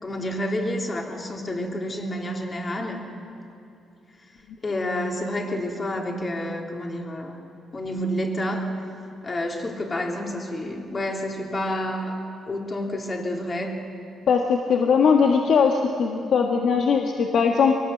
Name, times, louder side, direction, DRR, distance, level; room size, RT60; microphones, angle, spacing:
voice 1, 0.0-3.0 4.6-7.3 7.7-8.6 9.2-13.7, left 1 dB, 30° left, 1 dB, 3.4 m, -29 dB
voice 2, 14.3-17.8, left 6 dB, 65° left, 2 dB, 1.6 m, -20 dB
23.5 x 19.0 x 7.9 m, 2.5 s
cardioid pair, 90°, 0 cm